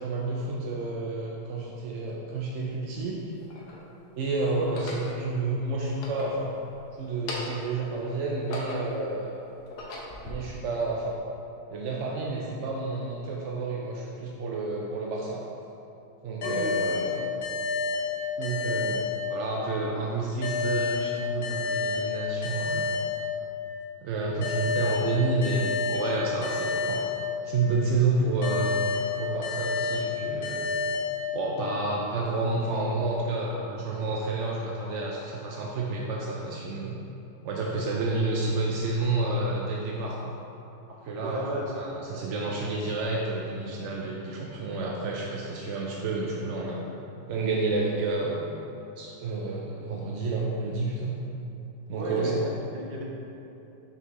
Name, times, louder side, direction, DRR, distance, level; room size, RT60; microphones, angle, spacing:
voice 1, 0.0-3.2 4.2-6.5 7.0-9.6 10.2-11.1 11.7-15.4 16.2-17.2 18.4-19.0 19.3-22.9 24.0-27.0 27.4-28.9 29.2-30.7 31.3-36.9 37.4-40.3 40.9-41.4 41.7-46.8 47.2-48.5 49.0-51.1 51.9-52.3, right 3 dB, 65° right, -3 dB, 0.7 m, -30 dB
sound 1, 2.1-2.2 3.0-3.9 4.6-5.1 5.8-6.8 7.1-7.7 8.2-9.1 9.6-10.3, left 1 dB, 75° left, 1.4 m, -39 dB
sound 2, 16.4-19.7 20.4-23.7 24.4-27.7 28.4-31.7, left 4 dB, 60° left, 1.4 m, -30 dB
voice 2, 16.4-17.3 41.2-41.7 51.9-53.0, right 1 dB, 45° right, -4 dB, 1.1 m, -34 dB
6.1 x 5.7 x 3.0 m, 2.9 s
omnidirectional pair, 1.8 m